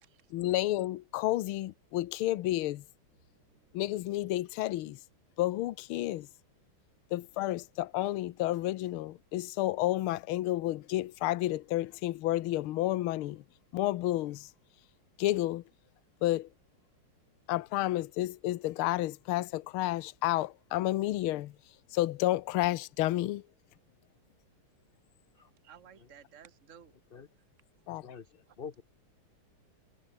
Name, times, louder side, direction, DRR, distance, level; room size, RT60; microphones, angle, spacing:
voice 1, 0.3-2.8 3.7-5.0 5.4-6.3 7.1-13.4 13.7-14.5 15.2-15.6 16.2-16.5 17.5-21.5 21.9-23.4 27.9-28.1, left 15 dB, 80° left, 1.6 m, -31 dB
voice 2, 3.3-3.7 25.6-26.9 28.5-28.6, right 8 dB, 35° right, 1.9 m, -56 dB
voice 3, 27.9-28.3 28.6-28.8, left 6 dB, 35° left, 1.1 m, -45 dB
omnidirectional pair, 2.4 m